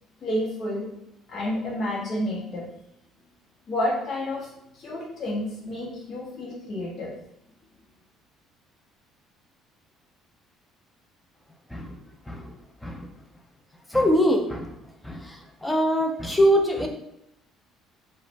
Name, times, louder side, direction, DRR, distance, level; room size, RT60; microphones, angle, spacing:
voice 1, 0.2-0.9 1.3-2.7 3.7-4.5 4.7-7.2, left 1 dB, 45° left, -3 dB, 0.7 m, -30 dB
voice 2, 11.7-12.6 12.8-13.2 13.9-16.9, equal, 10° left, 2 dB, 0.5 m, -24 dB
2.4 x 2.0 x 3.0 m, 0.81 s
figure-of-eight pair, 55°, 0 cm